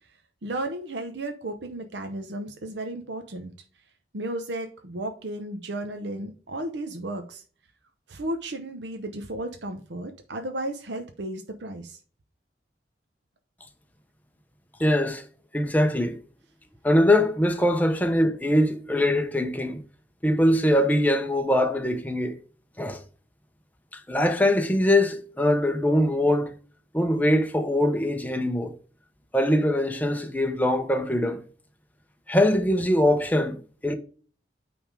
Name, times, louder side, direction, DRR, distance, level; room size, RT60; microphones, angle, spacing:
voice 1, 0.4-3.5 4.1-7.4 8.1-12.0, right 1 dB, 90° right, 0.8 m, -34 dB
voice 2, 14.8-15.3 15.5-16.2 16.8-19.8 20.2-22.4 22.8-23.0 23.9-26.6 26.9-28.7 29.3-31.4 32.3-33.6 33.8-33.9, left 1 dB, 10° left, 0.7 m, -22 dB
8.8 x 3.5 x 4.8 m
head